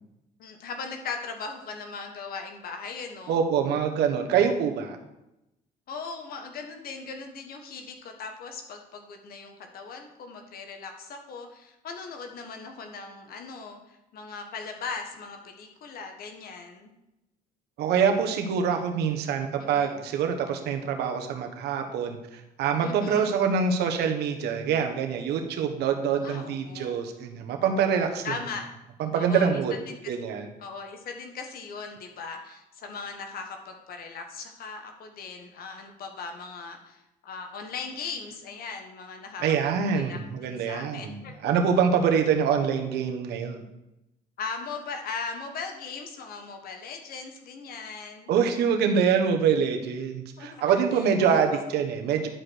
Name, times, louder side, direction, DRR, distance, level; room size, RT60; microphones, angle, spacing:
voice 1, 0.4-3.4 5.9-16.9 19.6-20.0 22.8-23.3 26.2-27.0 28.2-28.7 29.1-30.1 30.6-39.5 39.9-41.5 44.4-48.3 50.4-50.5 50.9-51.4, left 5 dB, 60° left, 4 dB, 1.5 m, -39 dB
voice 2, 3.3-5.0 17.8-28.3 29.0-29.7 30.1-30.5 39.4-43.6 48.3-52.3, right 6 dB, 75° right, 5 dB, 1.4 m, -25 dB
11.0 x 5.1 x 6.3 m, 0.92 s
cardioid pair, 110°, 17 cm